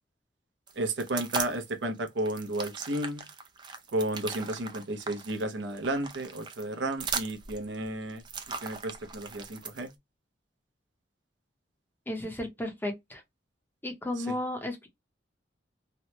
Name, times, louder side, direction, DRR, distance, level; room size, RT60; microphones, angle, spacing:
sound 1, 0.7-1.7 2.1-9.9, right 5 dB, 25° right, 0.4 m, -39 dB
voice 1, 0.8-3.3 3.9-8.2 8.6-9.9 14.3-14.4, right 1 dB, 70° right, 0.6 m, -32 dB
voice 2, 12.1-13.2 13.8-14.9, left 1 dB, 10° left, 0.7 m, -34 dB
2.9 x 2.1 x 3.0 m
head